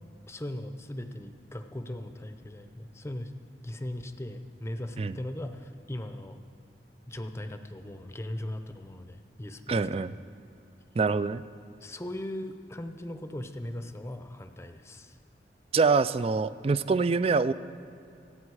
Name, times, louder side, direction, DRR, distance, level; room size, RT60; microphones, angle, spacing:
voice 1, 0.3-3.3 3.6-6.4 7.1-10.1 11.8-15.2, left 1 dB, 15° left, 8 dB, 0.7 m, -39 dB
voice 2, 9.7-10.1 11.0-11.4 15.7-17.5, right 4 dB, 35° right, 15 dB, 0.3 m, -25 dB
25.5 x 8.6 x 4.8 m, 2.7 s
head